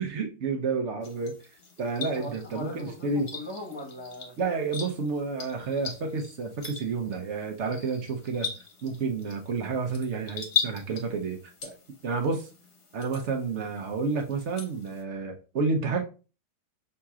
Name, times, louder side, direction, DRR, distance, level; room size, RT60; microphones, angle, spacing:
voice 1, 0.0-1.4 1.8-3.3 4.4-8.5 8.8-11.8 12.0-12.5 12.9-16.0, right 4 dB, 55° right, 0.9 m, -30 dB
sound 1, 1.0-15.0, left 6 dB, 40° left, 1.1 m, -39 dB
voice 2, 2.1-4.3, left 1 dB, 20° left, 1.1 m, -40 dB
6.5 x 2.9 x 2.4 m
omnidirectional pair, 1.8 m